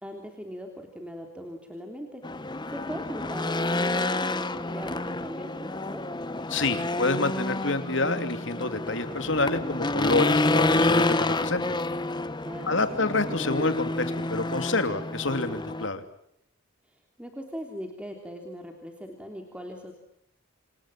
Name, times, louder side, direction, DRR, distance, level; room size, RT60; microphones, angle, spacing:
voice 1, 0.0-2.2 2.7-6.1 12.4-13.0 16.9-19.9, equal, 5° right, 3 dB, 3.2 m, -39 dB
Race car auto racing / Engine, 2.2-15.9, left 2 dB, 20° left, 1.1 m, -28 dB
voice 2, 6.5-11.6 12.7-16.0, left 3 dB, 65° left, 9 dB, 2.9 m, -28 dB
29.0 x 26.5 x 7.6 m, 0.72 s
head